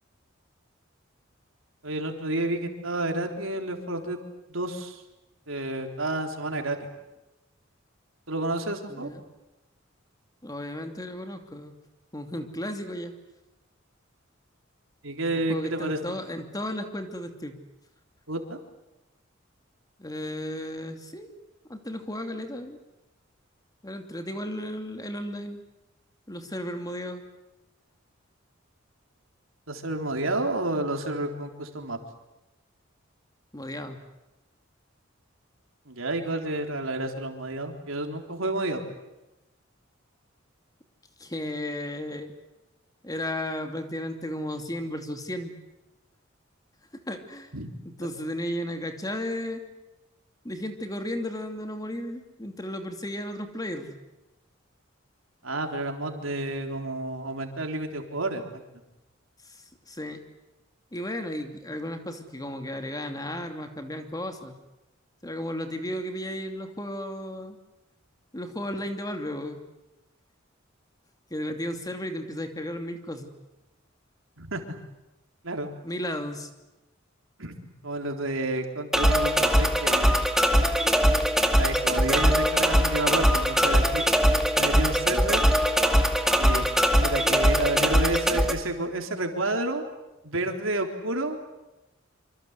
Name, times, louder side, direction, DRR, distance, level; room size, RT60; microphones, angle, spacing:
voice 1, 1.8-4.2 4.5-5.0 5.5-6.9 8.3-9.1 15.0-16.2 18.3-18.6 29.7-32.0 35.9-38.8 47.5-47.7 55.4-58.6 74.4-74.8 75.4-75.7 77.4-77.6 77.8-80.2 81.6-85.5 86.4-86.7 87.0-89.8 90.2-91.4, right 2 dB, 85° right, 4 dB, 3.7 m, -30 dB
voice 2, 8.9-9.2 10.4-11.7 12.1-13.1 15.3-17.6 20.0-21.3 21.7-22.8 23.8-25.6 26.3-27.2 33.5-34.0 41.2-42.3 43.0-45.5 47.1-47.5 47.8-49.6 50.4-54.0 59.5-59.6 59.9-60.2 60.9-64.5 65.2-67.6 68.3-69.6 71.3-73.3 75.8-76.5, left 1 dB, 20° left, 6 dB, 2.7 m, -34 dB
sound 1, 78.9-88.5, equal, ahead, 2.2 m, -22 dB
26.5 x 25.5 x 8.2 m, 0.99 s
head